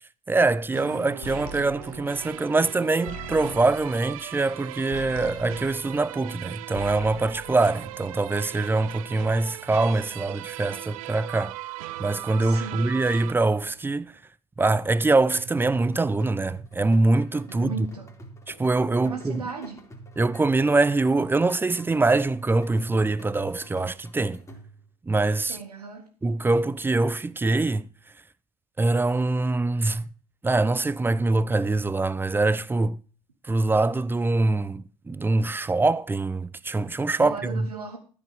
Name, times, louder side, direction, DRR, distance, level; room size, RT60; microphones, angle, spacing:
voice 1, 0.3-11.5 12.0-14.1 14.6-17.9 18.5-19.4 20.2-24.4 25.1-25.6 26.2-27.9 28.8-30.0 30.4-33.0 33.5-37.6, right 3 dB, 10° right, 0.5 m, -24 dB
sound 1, 0.7-13.3, right 17 dB, 65° right, 0.5 m, -39 dB
sound 2, 1.2-6.4 6.7-8.4, left 3 dB, 50° left, 1.3 m, -43 dB
voice 2, 12.4-13.0 17.5-18.1 19.0-19.8 25.5-26.1 37.2-38.0, right 5 dB, 80° right, 1.7 m, -37 dB
sound 3, 15.3-24.9, right 1 dB, 15° left, 3.1 m, -46 dB
13.5 x 5.1 x 7.0 m
figure-of-eight pair, 65°, 19 cm